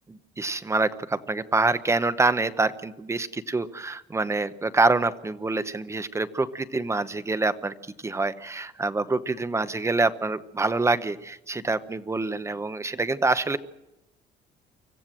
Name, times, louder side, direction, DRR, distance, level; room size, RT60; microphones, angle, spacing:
voice 1, 0.1-13.6, right 3 dB, 15° right, 13 dB, 0.9 m, -26 dB
25.0 x 14.5 x 7.5 m, 0.92 s
cardioid pair, 110°, 17 cm